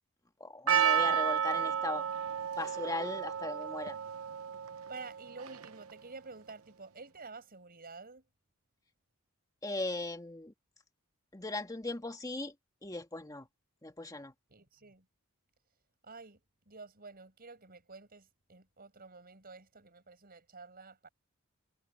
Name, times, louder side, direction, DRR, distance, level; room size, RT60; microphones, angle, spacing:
voice 1, 0.4-2.1 2.6-4.0 9.6-10.5 11.3-12.5 12.8-13.5 13.8-14.3, left 2 dB, 15° left, 1.8 m, -38 dB
Percussion, 0.7-5.9, right 8 dB, 75° right, 0.9 m, -32 dB
voice 2, 4.9-8.3 14.5-15.1 16.0-16.4 16.7-21.1, right 4 dB, 45° right, 6.6 m, -50 dB
head